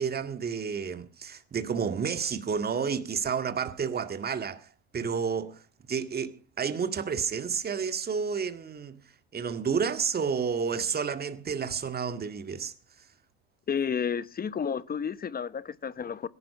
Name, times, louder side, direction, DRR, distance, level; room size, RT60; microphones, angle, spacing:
voice 1, 0.0-4.7 4.9-5.6 5.9-9.0 9.3-12.7, right 6 dB, 30° right, 1.9 m, -30 dB
voice 2, 13.7-16.3, left 7 dB, 25° left, 1.0 m, -31 dB
17.5 x 11.5 x 5.8 m
supercardioid pair, 90°, 33 cm